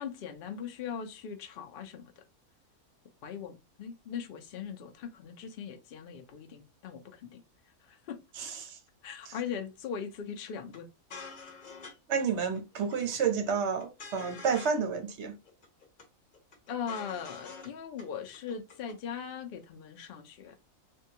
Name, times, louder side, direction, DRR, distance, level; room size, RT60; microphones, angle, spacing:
voice 1, 0.0-2.2 3.2-7.4 7.8-8.2 9.0-10.9 11.2-11.3 16.7-20.5, left 7 dB, 70° left, 0.5 m, -40 dB
voice 2, 8.4-8.8 9.3-9.4 12.1-15.3, right 6 dB, 60° right, 0.7 m, -30 dB
sound 1, 10.7-10.8 11.1-11.9 12.2-12.3 12.6-13.2 13.5-14.8 15.1-15.2 15.5-16.0 16.3-17.7 18.0-18.1 18.3-18.9, left 4 dB, 40° left, 0.8 m, -47 dB
3.6 x 2.2 x 2.7 m
omnidirectional pair, 1.6 m